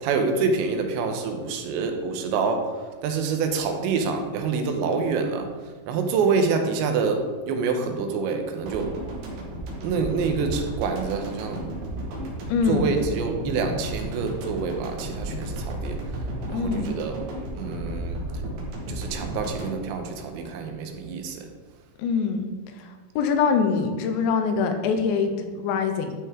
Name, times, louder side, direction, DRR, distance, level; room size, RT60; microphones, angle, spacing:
voice 1, 0.0-2.7 3.0-5.5 5.9-8.9 9.8-11.6 12.7-16.0 16.5-17.2 17.6-18.2 18.9-21.4, right 5 dB, 85° right, 5 dB, 3.1 m, -26 dB
sound 1, 8.7-20.8 21.1-21.3, right 1 dB, 65° right, 3.2 m, -33 dB
voice 2, 12.5-12.9 16.5-16.9 22.0-22.5 22.8-22.9 23.2-26.1, left 5 dB, 85° left, 6 dB, 3.1 m, -24 dB
12.0 x 5.5 x 3.6 m, 1.4 s
omnidirectional pair, 5.2 m